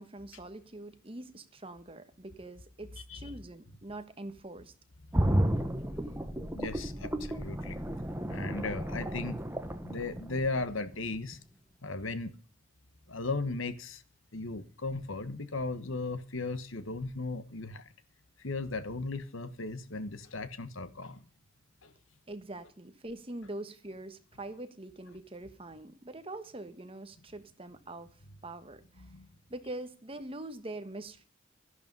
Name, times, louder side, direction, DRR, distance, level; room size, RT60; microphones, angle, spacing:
voice 1, 0.0-4.7 22.3-29.2 29.5-31.3, right 2 dB, 25° right, 1.3 m, -44 dB
sound 1, 5.1-10.9 11.3-11.4, right 1 dB, 10° right, 1.1 m, -32 dB
voice 2, 6.5-7.8 8.3-9.4 9.8-11.4 11.8-12.3 13.1-14.0 14.3-17.9 18.4-21.2 21.8-21.9 29.1-29.3, left 3 dB, 75° left, 1.3 m, -36 dB
13.5 x 11.5 x 5.4 m
head